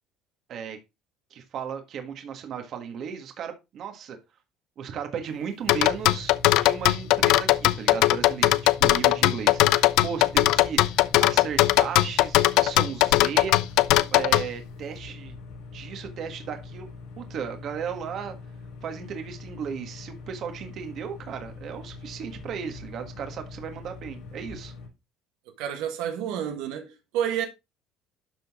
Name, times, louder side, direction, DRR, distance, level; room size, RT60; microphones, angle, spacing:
voice 1, 1.3-4.2 4.8-13.7 14.1-15.4 15.7-16.9 17.2-18.3 18.8-24.7, right 7 dB, 45° right, 1.5 m, -35 dB
sound 1, 5.6-24.9, left 4 dB, 85° left, 3.8 m, -43 dB
sound 2, 5.7-14.4, left 17 dB, 70° left, 0.4 m, -19 dB
voice 2, 25.6-27.5, right 9 dB, 85° right, 1.4 m, -29 dB
12.0 x 3.9 x 3.6 m
cardioid pair, 150°, 0 cm